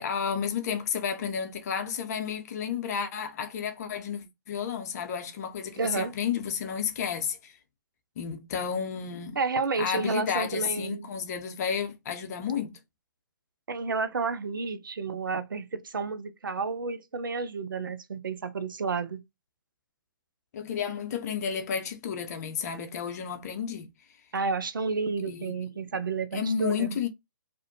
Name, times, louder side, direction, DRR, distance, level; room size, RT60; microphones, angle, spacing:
voice 1, 0.0-7.5 8.2-9.4 9.7-12.8 20.5-23.9 25.3-25.5 26.3-27.1, left 7 dB, 50° left, 0.6 m, -32 dB
voice 2, 5.8-6.1 9.4-11.1 13.7-19.2 24.3-27.0, right 4 dB, 80° right, 0.5 m, -31 dB
2.5 x 2.1 x 2.6 m
figure-of-eight pair, 125°, 11 cm